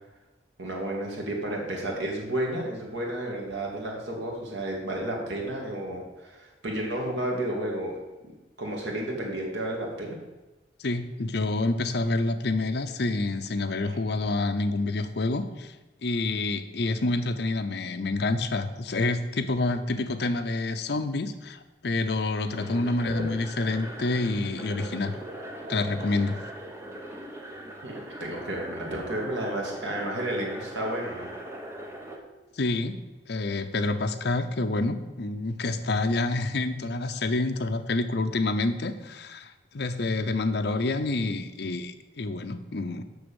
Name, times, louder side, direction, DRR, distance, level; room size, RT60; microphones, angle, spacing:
voice 1, 0.6-8.3 8.6-10.2 13.9-14.0 23.1-23.2 27.8-31.3, right 1 dB, 80° right, -1 dB, 2.3 m, -32 dB
voice 2, 10.8-15.7 16.0-25.1 25.7-26.4 32.5-43.0, left 2 dB, 65° left, 9 dB, 0.7 m, -28 dB
sound 1, 22.5-32.2, right 1 dB, 15° right, 1.0 m, -40 dB
7.0 x 6.1 x 7.1 m, 1.2 s
head